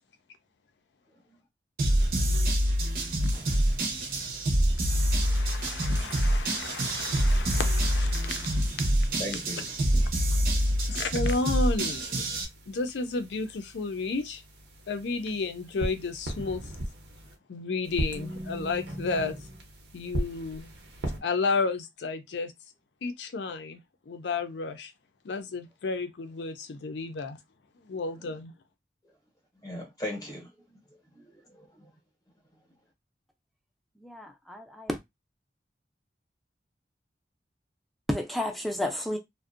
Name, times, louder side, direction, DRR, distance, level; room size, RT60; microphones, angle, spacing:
sound 1, 1.8-12.4, right 1 dB, 55° right, 0.6 m, -26 dB
sound 2, 2.7-4.6 5.1-8.6 9.1-11.1 11.6-17.3 17.8-21.2, right 1 dB, 85° right, 0.8 m, -40 dB
voice 1, 4.8-8.7 10.6-12.3 12.7-14.4 14.9-16.7 17.5-19.4 19.9-20.7 21.2-22.5 23.0-23.8 24.1-24.9 25.2-27.4 27.8-28.5, left 4 dB, 85° left, 0.4 m, -32 dB
voice 2, 9.2-9.7 9.9-10.0 29.6-30.5 31.1-31.8, left 1 dB, 20° left, 0.7 m, -37 dB
voice 3, 34.0-35.0 38.1-39.2, left 1 dB, ahead, 0.4 m, -31 dB
2.5 x 2.1 x 2.4 m
head